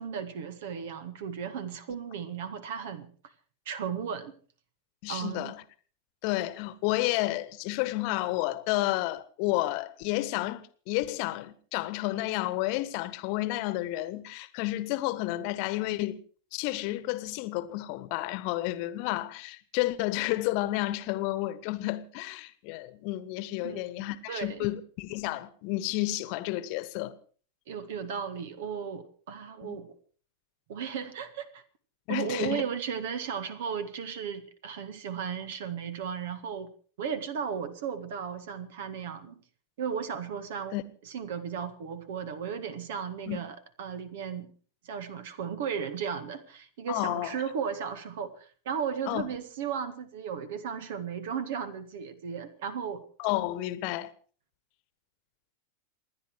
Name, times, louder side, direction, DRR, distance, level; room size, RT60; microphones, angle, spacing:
voice 1, 0.0-3.1 3.7-4.3 5.1-5.5 23.6-24.7 27.7-29.9 30.7-31.6 32.1-36.7 37.0-39.4 39.8-40.8 41.1-44.5 44.8-53.0, right 7 dB, 55° right, 1.8 m, -35 dB
voice 2, 5.0-5.6 6.2-16.2 16.5-27.1 29.6-29.8 32.1-32.6 40.7-40.8 43.3-43.4 46.9-47.3 49.1-49.3 53.2-54.1, left 17 dB, 45° left, 1.3 m, -31 dB
28.0 x 10.5 x 4.7 m
figure-of-eight pair, 90°, 0 cm